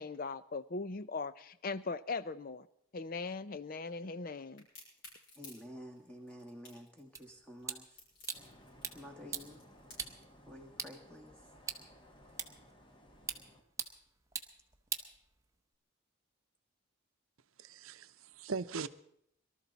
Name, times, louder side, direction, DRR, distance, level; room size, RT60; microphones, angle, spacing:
voice 1, 0.0-2.7 2.9-4.7, left 4 dB, 40° left, 15 dB, 0.5 m, -39 dB
Crack, 4.6-10.3, left 2 dB, 70° left, 6.5 m, -55 dB
voice 2, 5.4-8.0 8.9-9.6 10.5-11.3, equal, 5° left, 3 dB, 1.8 m, -50 dB
sound 1, 7.2-15.8, right 6 dB, 15° right, 0.8 m, -45 dB
sound 2, 8.3-13.6, equal, 25° left, 1.4 m, -59 dB
voice 3, 17.6-18.9, right 4 dB, 80° right, 12 dB, 0.7 m, -40 dB
23.0 x 13.0 x 4.1 m, 0.72 s
head